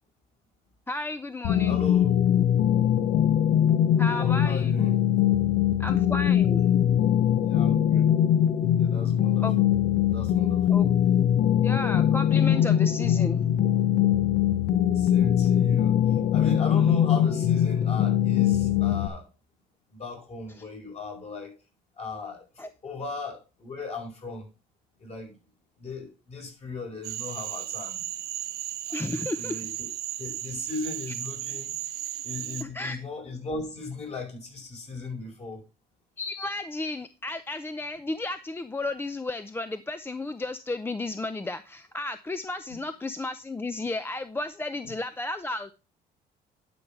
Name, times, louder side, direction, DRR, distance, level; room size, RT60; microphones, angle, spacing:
voice 1, 0.9-1.8 4.0-4.7 5.8-6.7 9.4-9.6 10.7-10.9 11.6-13.5 22.6-22.7 28.9-29.6 32.6-33.0 36.2-45.7, left 2 dB, 15° left, 0.5 m, -33 dB
sound 1, 1.4-19.1, left 10 dB, 70° left, 0.9 m, -22 dB
voice 2, 1.6-2.1 4.0-5.0 7.5-8.1 8.7-9.7 10.1-10.8 15.0-15.9 16.3-19.3 19.9-21.6 22.0-24.5 25.0-25.3 25.8-28.0 28.9-29.9 30.2-31.8 32.2-35.6, left 3 dB, 40° left, 5.2 m, -37 dB
Cricket / Frog, 27.0-32.6, right 13 dB, 75° right, 0.9 m, -35 dB
11.5 x 5.4 x 4.4 m
cardioid pair, 110°, 17 cm